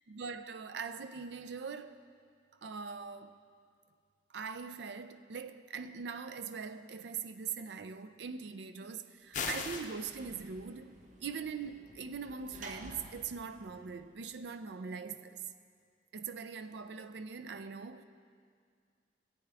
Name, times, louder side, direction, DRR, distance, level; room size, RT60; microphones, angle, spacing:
voice 1, 0.1-2.0 2.6-3.3 4.3-15.4 16.1-18.0, right 5 dB, 70° right, 0.4 m, -42 dB
sound 1, 9.3-9.9, left 5 dB, 40° left, 0.6 m, -36 dB
Sliding door / Slam, 9.3-14.7, right 2 dB, 40° right, 0.8 m, -53 dB
15.5 x 8.4 x 3.4 m
head